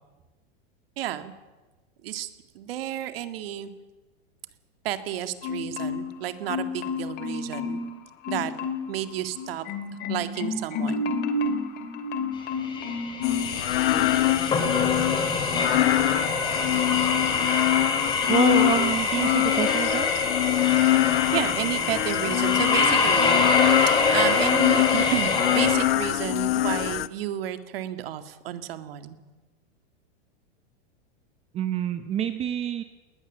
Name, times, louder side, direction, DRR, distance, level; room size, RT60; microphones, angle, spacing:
voice 1, 1.0-1.3 2.0-2.3 2.5-3.7 4.8-7.8 8.3-8.5 8.9-9.6 10.1-11.1 21.3-23.4 24.1-29.2, right 12 dB, 65° right, 9 dB, 2.1 m, -31 dB
Marimba xylophone, 5.4-6.2 6.5-7.9 8.2-9.0 9.4-13.5 13.9-14.6 15.0-15.2, left 3 dB, 30° left, 2.3 m, -31 dB
sound 1, 12.6-25.8, left 4 dB, 15° left, 3.2 m, -25 dB
sound 2, 13.2-27.1, left 17 dB, 70° left, 0.9 m, -25 dB
voice 2, 18.3-20.1 31.5-32.8, right 9 dB, 20° right, 9 dB, 0.8 m, -27 dB
20.5 x 19.5 x 7.4 m, 1.2 s
supercardioid pair, 160°, 31 cm